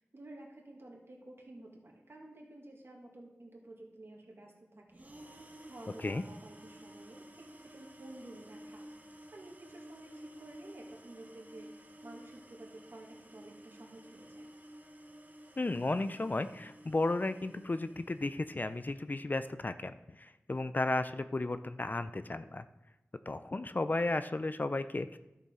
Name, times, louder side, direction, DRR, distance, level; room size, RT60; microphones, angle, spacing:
voice 1, 0.0-8.9 9.3-14.5, right 1 dB, 55° right, -1 dB, 2.1 m, -52 dB
sound 1, 4.9-18.9, right 1 dB, 35° right, 1.0 m, -53 dB
voice 2, 15.6-22.6 23.3-25.2, left 2 dB, 40° left, 11 dB, 0.4 m, -34 dB
11.5 x 6.7 x 3.7 m, 0.95 s
wide cardioid pair, 55°, 5 cm